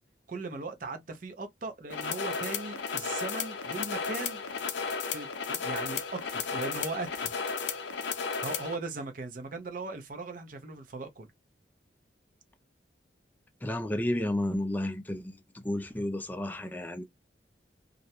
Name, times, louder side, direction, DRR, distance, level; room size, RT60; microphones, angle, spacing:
voice 1, 0.3-4.4 5.1-7.3 8.4-11.3, right 3 dB, 50° right, 0.6 m, -38 dB
sound 1, 1.9-8.8, left 5 dB, 80° left, 0.4 m, -34 dB
voice 2, 13.6-17.0, left 1 dB, 10° left, 0.3 m, -32 dB
2.4 x 2.0 x 2.8 m
head